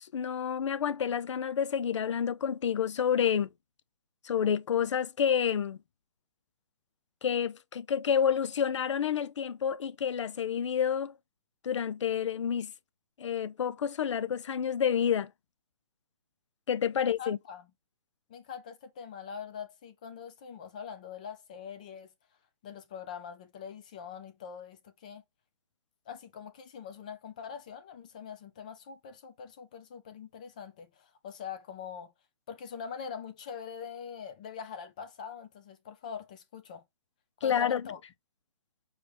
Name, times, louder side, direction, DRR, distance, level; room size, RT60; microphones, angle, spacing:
voice 1, 0.0-3.5 4.2-5.8 7.2-11.1 11.6-12.7 13.2-15.3 16.7-17.4 37.4-37.8, left 8 dB, 80° left, 0.5 m, -29 dB
voice 2, 16.9-17.7 18.3-22.1 22.6-25.2 26.1-32.1 32.5-36.8 37.4-38.0, left 7 dB, 15° left, 0.3 m, -43 dB
4.7 x 2.7 x 3.2 m
hypercardioid pair, 170°, 15 cm